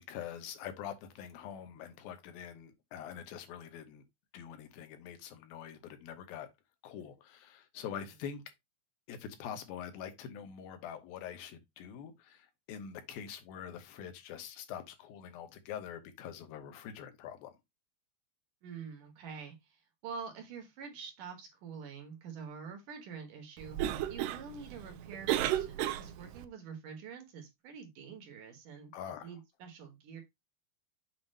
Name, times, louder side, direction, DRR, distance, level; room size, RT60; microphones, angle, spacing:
voice 1, 0.0-4.0 4.3-6.5 6.8-8.4 9.1-17.6 28.9-29.3, left 8 dB, 75° left, 2.8 m, -45 dB
voice 2, 18.6-23.8 24.1-28.9 29.2-30.2, right 6 dB, 65° right, 2.7 m, -46 dB
Cough, 23.6-26.5, right 12 dB, 85° right, 1.9 m, -34 dB
7.6 x 2.7 x 5.3 m
omnidirectional pair, 4.4 m